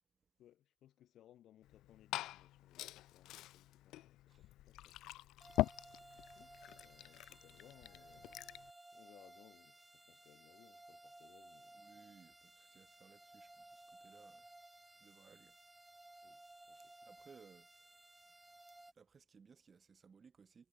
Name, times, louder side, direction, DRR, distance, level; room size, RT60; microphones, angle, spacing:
voice 1, 0.4-5.1 6.3-8.6 8.9-11.8 16.2-17.1, left 12 dB, 50° left, 2.1 m, -66 dB
Glass / Fill (with liquid), 1.6-8.7, left 15 dB, 65° left, 0.4 m, -43 dB
sound 1, 5.4-18.9, right 2 dB, 5° right, 1.5 m, -59 dB
voice 2, 11.7-14.5 14.9-15.6 16.7-17.7 18.9-20.7, right 5 dB, 25° right, 3.0 m, -63 dB
cardioid pair, 165°, 0 cm